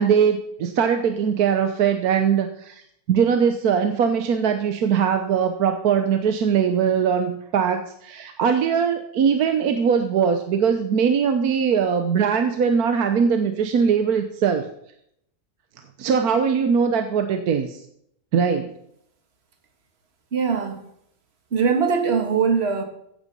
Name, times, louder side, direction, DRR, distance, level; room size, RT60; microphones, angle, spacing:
voice 1, 0.0-2.8 3.1-14.7 16.0-17.8 18.3-18.7, right 7 dB, 70° right, 1.4 m, -21 dB
voice 2, 20.3-20.8 21.5-22.8, right 6 dB, 40° right, 1.9 m, -21 dB
15.0 x 9.0 x 5.4 m
omnidirectional pair, 1.7 m